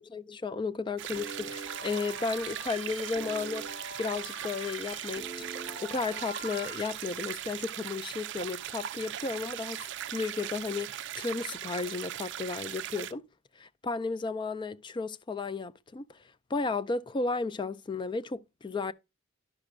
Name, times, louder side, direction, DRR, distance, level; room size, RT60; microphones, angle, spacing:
voice 1, 0.0-13.2 13.6-16.2 16.5-18.9, left 4 dB, 25° left, 0.3 m, -34 dB
sound 1, 1.0-13.1, right 12 dB, 65° right, 0.4 m, -39 dB
sound 2, 1.1-6.9, equal, 85° left, 1.9 m, -44 dB
10.5 x 5.9 x 2.4 m
head